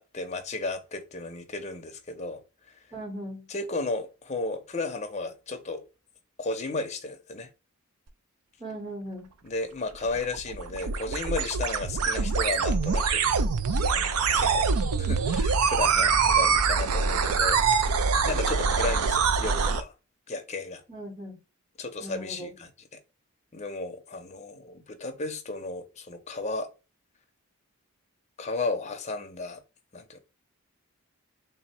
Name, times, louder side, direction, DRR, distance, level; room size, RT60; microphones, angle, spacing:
voice 1, 0.0-2.4 2.7-2.8 3.5-5.8 6.4-7.5 9.4-13.3 13.7-14.7 15.0-17.9 18.2-19.9 20.3-20.8 21.8-23.0 23.5-26.7 28.4-29.6 29.9-30.2, left 3 dB, 30° left, 0.6 m, -34 dB
voice 2, 2.9-3.5 8.6-9.3 15.9-16.4 20.9-21.4 22.0-22.5, right 1 dB, 25° right, 0.9 m, -39 dB
sound 1, 9.9-19.8, right 5 dB, 85° right, 0.5 m, -24 dB
3.6 x 2.1 x 4.1 m
head